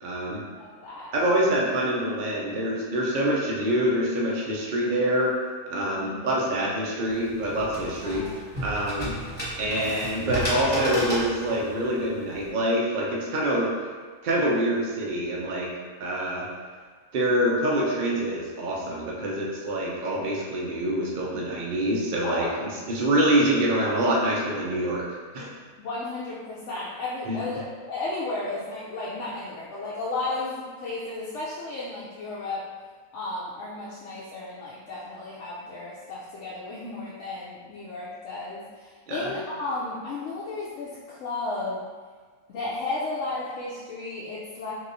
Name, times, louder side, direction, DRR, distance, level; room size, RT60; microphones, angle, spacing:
voice 1, 0.0-0.4 1.1-5.3 5.7-8.2 8.6-9.1 9.6-13.7 14.2-15.7 16.0-16.4 17.1-25.0 25.3-25.5 27.3-27.4 39.1-39.3, right 1 dB, 70° right, -3 dB, 0.4 m, -25 dB
voice 2, 0.6-1.1 5.7-6.5 8.0-8.6 22.2-22.8 25.8-32.7 33.1-41.8 42.5-44.7, left 2 dB, 65° left, -7 dB, 0.8 m, -34 dB
sound 1, 7.1-12.5, right 1 dB, 5° left, 1.0 m, -33 dB
3.4 x 3.0 x 2.6 m, 1.5 s
omnidirectional pair, 1.6 m